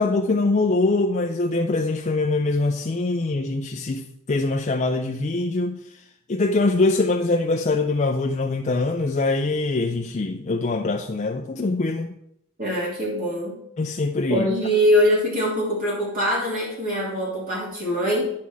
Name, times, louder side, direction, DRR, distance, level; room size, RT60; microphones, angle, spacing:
voice 1, 0.0-5.8 6.3-12.1 13.8-14.5, left 3 dB, 35° left, 3 dB, 0.5 m, -23 dB
voice 2, 12.6-13.6 14.3-18.3, equal, 40° right, -5 dB, 2.8 m, -23 dB
9.6 x 5.9 x 4.7 m, 0.75 s
head